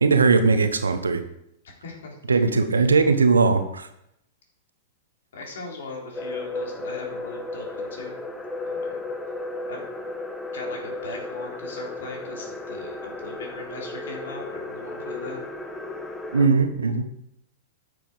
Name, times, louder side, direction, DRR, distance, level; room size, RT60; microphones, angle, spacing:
voice 1, 0.0-1.2 2.3-3.9 16.3-17.0, right 4 dB, 80° right, 9 dB, 1.1 m, -19 dB
voice 2, 1.8-2.4 5.3-8.2 8.6-9.0 9.7-9.8 10.5-15.4, left 3 dB, 65° left, -1 dB, 3.4 m, -39 dB
sound 1, 6.1-16.5, left 2 dB, 10° left, 1.1 m, -34 dB
9.5 x 6.9 x 5.1 m, 0.77 s
figure-of-eight pair, 100°, 0 cm